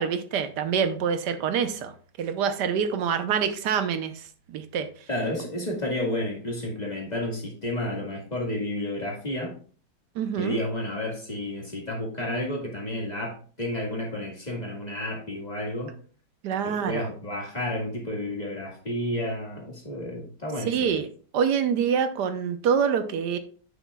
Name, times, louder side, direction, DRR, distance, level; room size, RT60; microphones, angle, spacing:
voice 1, 0.0-1.9 2.2-4.2 4.5-4.9 10.2-10.6 16.4-17.1 20.6-21.1 21.3-23.4, right 7 dB, 85° right, 1.4 m, -26 dB
voice 2, 5.1-9.5 10.4-15.9 16.7-21.0, left 1 dB, 25° left, 1.8 m, -31 dB
9.3 x 6.1 x 2.3 m
omnidirectional pair, 1.8 m